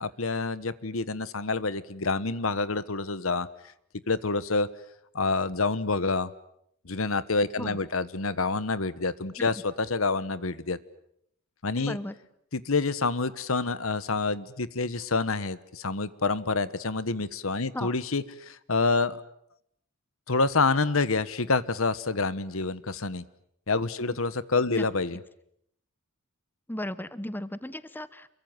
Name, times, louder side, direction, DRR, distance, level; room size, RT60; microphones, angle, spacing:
voice 1, 0.0-3.5 4.1-4.7 5.1-6.3 6.8-10.8 11.6-12.0 12.5-19.2 20.3-23.2 23.7-25.2, left 3 dB, 75° left, 16 dB, 1.3 m, -27 dB
voice 2, 11.8-12.1 17.7-17.9 24.1-24.2 24.7-24.8 26.7-28.3, left 1 dB, 10° left, 15 dB, 1.1 m, -35 dB
28.5 x 23.0 x 9.1 m, 0.72 s
head